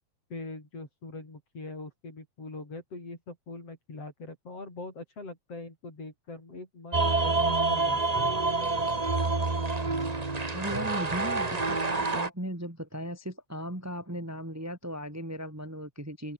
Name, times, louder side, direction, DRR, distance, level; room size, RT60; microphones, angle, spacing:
voice 1, 0.3-8.3, left 3 dB, 50° left, 8.2 m, -42 dB
sound 1, 6.9-12.3, right 3 dB, 30° right, 0.7 m, -27 dB
voice 2, 10.5-16.3, equal, 5° right, 3.0 m, -37 dB
omnidirectional pair, 3.6 m